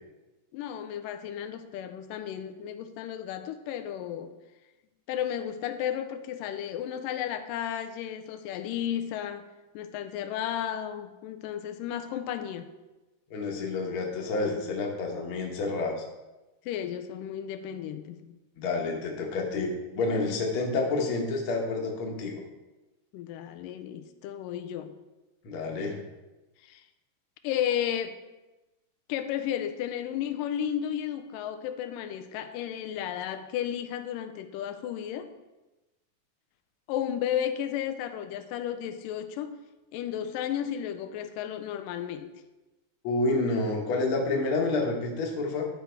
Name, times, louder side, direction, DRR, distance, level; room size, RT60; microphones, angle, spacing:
voice 1, 0.5-4.3 5.1-9.5 9.7-12.7 16.7-18.3 23.1-24.9 26.6-26.8 27.4-28.2 29.1-35.3 36.9-39.6 39.9-42.3, left 10 dB, 90° left, 9 dB, 2.2 m, -33 dB
voice 2, 13.3-16.0 18.6-22.4 25.4-26.0 43.0-45.7, left 3 dB, 55° left, 0 dB, 1.6 m, -29 dB
12.0 x 4.1 x 4.5 m, 1.1 s
omnidirectional pair, 3.8 m